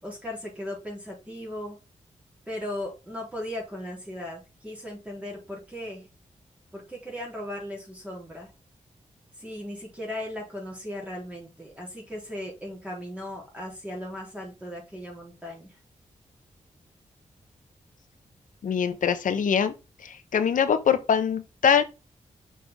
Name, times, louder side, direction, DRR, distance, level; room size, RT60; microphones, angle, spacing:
voice 1, 0.0-1.8 2.5-6.1 6.7-8.5 9.4-15.8, left 1 dB, 10° right, 3.7 m, -37 dB
voice 2, 18.6-19.7 20.0-21.8, left 7 dB, 90° left, 1.1 m, -23 dB
6.5 x 6.1 x 3.6 m
wide cardioid pair, 145°, 13 cm